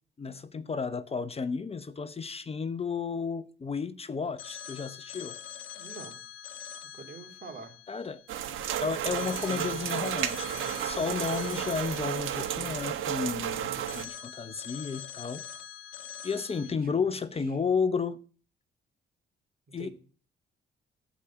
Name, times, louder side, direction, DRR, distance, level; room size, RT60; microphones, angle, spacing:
voice 1, 0.2-5.4 7.9-8.2 8.8-15.4 16.2-18.2 19.7-19.9, left 5 dB, 30° left, 0.9 m, -32 dB
Telephone, 4.4-8.7 9.2-13.4 13.9-16.7, left 8 dB, 85° left, 1.2 m, -44 dB
voice 2, 5.7-6.2 6.9-7.8 16.5-17.1 17.4-17.5 19.8-19.9, right 4 dB, 45° right, 3.0 m, -46 dB
sound 1, 8.3-14.1, right 10 dB, 85° right, 1.2 m, -32 dB
14.5 x 5.1 x 8.4 m
cardioid pair, 90°, 20 cm